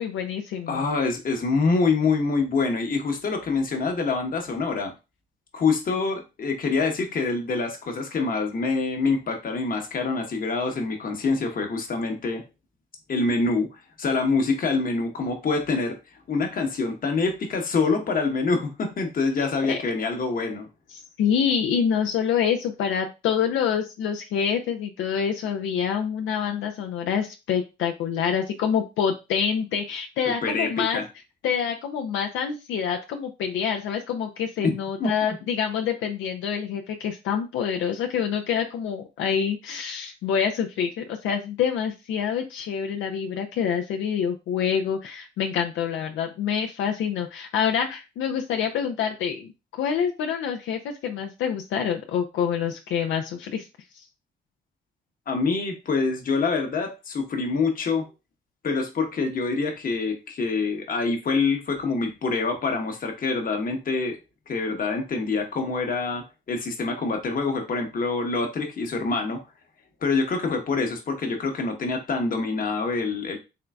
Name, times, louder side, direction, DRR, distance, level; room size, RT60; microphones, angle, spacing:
voice 1, 0.0-0.8 19.4-19.8 20.9-31.0 31.4-53.7 53.9-54.0, left 7 dB, 85° left, 3 dB, 0.5 m, -26 dB
voice 2, 0.7-4.9 5.5-12.4 13.1-16.0 16.3-20.7 30.4-31.0 34.6-34.7 35.0-35.1 55.3-58.1 58.6-64.2 64.5-69.4 70.0-73.4, left 4 dB, 45° left, 4 dB, 1.0 m, -25 dB
3.7 x 3.3 x 2.3 m, 0.27 s
cardioid pair, 90°, 20 cm